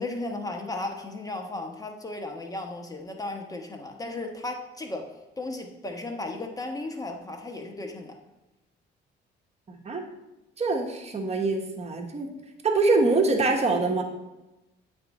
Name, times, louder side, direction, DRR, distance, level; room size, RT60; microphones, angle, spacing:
voice 1, 0.0-5.1 5.4-8.2, left 2 dB, 20° left, 3 dB, 1.0 m, -35 dB
voice 2, 9.7-10.0 10.6-12.3 12.6-14.0, right 3 dB, 35° right, 1 dB, 1.1 m, -24 dB
8.5 x 3.5 x 4.1 m, 1.0 s
cardioid pair, 90°, 20 cm